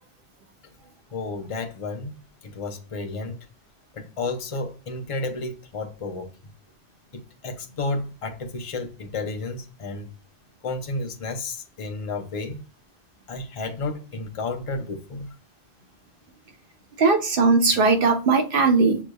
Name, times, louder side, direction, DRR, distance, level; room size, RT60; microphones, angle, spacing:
voice 1, 1.1-3.5 3.9-6.3 7.1-10.1 10.6-12.6 13.3-15.3, left 3 dB, 40° left, 0.6 m, -32 dB
voice 2, 17.0-19.0, right 4 dB, 55° right, 1.0 m, -19 dB
6.4 x 3.1 x 2.2 m
omnidirectional pair, 1.1 m